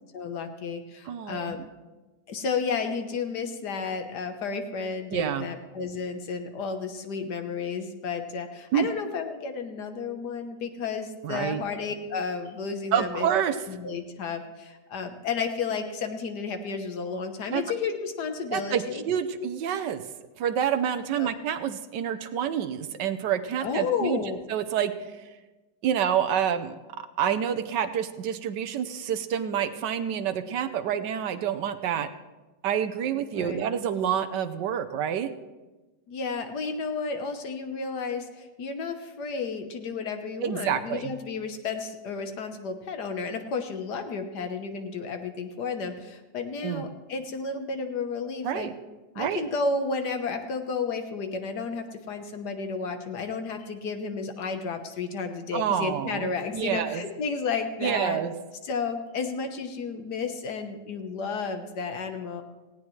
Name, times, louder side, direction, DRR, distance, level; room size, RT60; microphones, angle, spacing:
voice 1, 0.1-1.6 2.3-13.3 13.6-19.0 21.2-21.3 23.6-24.4 33.3-33.6 36.1-48.7 49.1-58.2 58.7-62.4, left 5 dB, 65° left, 6 dB, 1.6 m, -32 dB
voice 2, 1.1-1.7 5.1-5.5 8.7-8.9 11.2-11.6 12.9-13.6 17.5-17.6 18.5-20.0 20.4-24.2 24.5-24.9 25.8-26.8 27.2-32.1 32.6-35.3 40.4-41.1 46.6-46.9 48.4-48.7 49.2-49.4 55.5-57.0 57.8-58.3, right 9 dB, 75° right, 9 dB, 1.4 m, -28 dB
18.5 x 16.5 x 3.2 m, 1.2 s
omnidirectional pair, 1.9 m